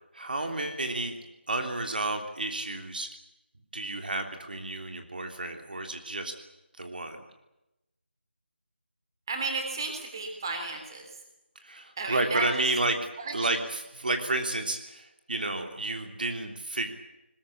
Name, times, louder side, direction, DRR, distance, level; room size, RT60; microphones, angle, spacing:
voice 1, 0.1-1.1 1.5-3.1 3.7-6.3 6.8-7.2 11.6-13.0 13.3-16.9, right 2 dB, 50° right, 5 dB, 3.3 m, -31 dB
voice 2, 9.3-11.1 12.0-12.5 13.2-13.5, right 3 dB, 20° right, 3 dB, 3.3 m, -33 dB
21.5 x 21.0 x 8.6 m, 0.92 s
figure-of-eight pair, 175°, 6 cm